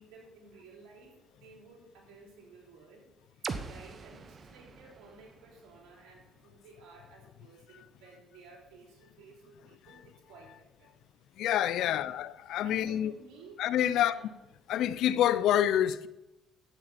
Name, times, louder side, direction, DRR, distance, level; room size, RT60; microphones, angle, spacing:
voice 1, 0.0-10.9 11.8-12.2 12.6-14.3, right 3 dB, 85° right, 3.6 m, -55 dB
sound 1, 3.4-7.3, right 5 dB, 45° right, 1.0 m, -44 dB
voice 2, 11.4-13.1 13.6-14.1 14.7-16.1, left 11 dB, 75° left, 0.5 m, -27 dB
11.5 x 8.7 x 4.2 m
supercardioid pair, 75°, 0 cm